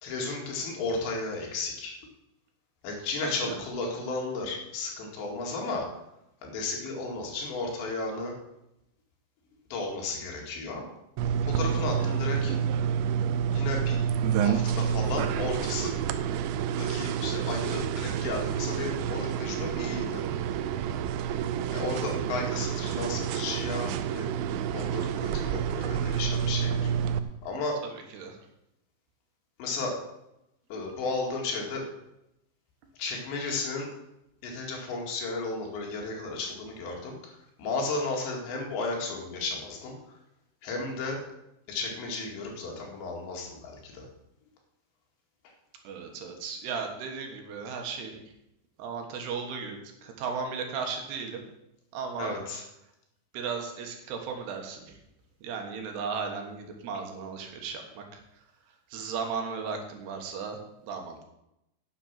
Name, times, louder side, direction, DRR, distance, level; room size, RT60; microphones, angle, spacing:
voice 1, 0.0-1.9 2.8-6.0 6.4-8.4 9.7-10.8 11.4-12.5 13.5-14.0 14.3-15.9 16.8-20.2 21.7-24.3 24.7-26.9 27.4-27.8 29.6-30.0 30.7-31.8 33.0-33.9 34.4-37.3 37.6-40.2 40.6-41.2 41.7-44.1 52.2-52.6, left 3 dB, 75° left, 0 dB, 4.3 m, -34 dB
voice 2, 3.2-3.6 27.8-28.4 45.8-48.3 48.8-51.5 51.9-52.4 53.3-55.0 55.4-58.2 58.9-61.2, right 5 dB, 70° right, 3 dB, 3.3 m, -36 dB
sound 1, 11.2-27.2, right 8 dB, 85° right, 3.0 m, -29 dB
10.0 x 7.2 x 7.3 m, 0.85 s
omnidirectional pair, 5.2 m